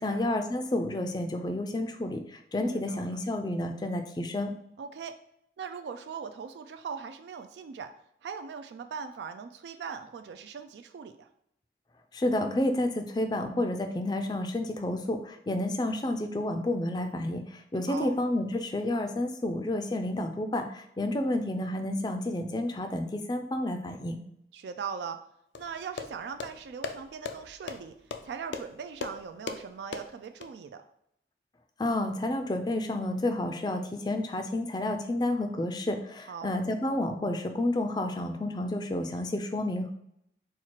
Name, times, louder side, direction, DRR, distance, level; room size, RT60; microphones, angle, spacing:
voice 1, 0.0-4.5 12.1-24.2 31.8-39.9, left 1 dB, 25° left, 6 dB, 0.4 m, -30 dB
voice 2, 2.7-3.2 4.8-5.2 5.6-7.9 8.2-11.3 17.9-18.1 24.5-25.2 25.6-27.9 28.2-30.8 36.3-36.6, right 6 dB, 80° right, 7 dB, 0.3 m, -40 dB
sound 1, 25.5-30.5, left 5 dB, 85° left, 0.4 m, -40 dB
4.3 x 2.4 x 4.4 m, 0.74 s
head